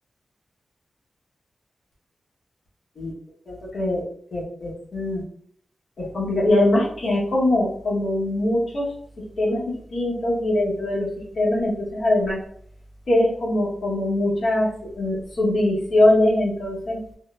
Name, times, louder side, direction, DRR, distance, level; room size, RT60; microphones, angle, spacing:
voice 1, 3.5-4.0 4.3-5.2 6.0-8.9 9.4-9.6 9.9-11.1 11.4-12.4 13.1-14.7 15.0-17.0, left 1 dB, 65° left, -5 dB, 1.0 m, -22 dB
3.7 x 2.0 x 2.3 m, 0.62 s
wide cardioid pair, 160°, 0 cm